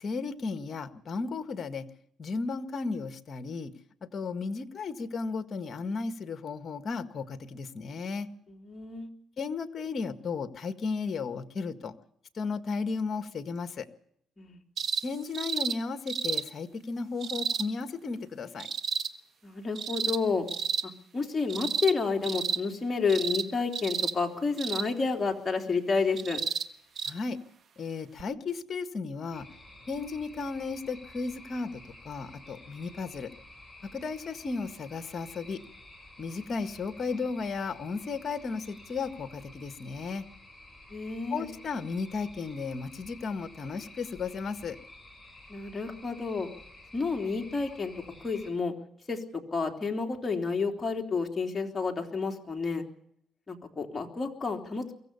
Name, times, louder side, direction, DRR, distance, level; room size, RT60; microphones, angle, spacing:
voice 1, 0.0-1.9 2.2-3.7 4.1-8.3 9.4-11.9 12.3-13.9 15.0-18.7 27.1-27.4 27.8-29.5 29.9-33.3 33.9-35.6 36.2-40.2 41.3-44.8, left 4 dB, 45° left, 10 dB, 1.7 m, -34 dB
voice 2, 8.5-9.1 14.4-14.6 19.4-20.5 20.8-26.4 40.9-41.5 45.5-46.5 46.9-47.9 48.2-48.7 49.1-49.2 49.5-52.8 53.5-55.0, left 4 dB, 25° left, 2 dB, 3.5 m, -30 dB
sound 1, 14.8-15.0 15.3-15.7 16.1-16.4 17.2-17.7 18.6-19.1 19.7-20.2 20.5-20.8 21.5-22.0 22.2-22.6 23.1-23.4 23.7-24.1 24.6-24.9 26.2-26.6 27.0-27.1 28.2-28.3, right 6 dB, 60° right, 1.4 m, -31 dB
sound 2, 29.3-48.5, left 2 dB, 5° left, 6.4 m, -51 dB
23.5 x 16.0 x 7.0 m, 0.70 s
cardioid pair, 90°, 0 cm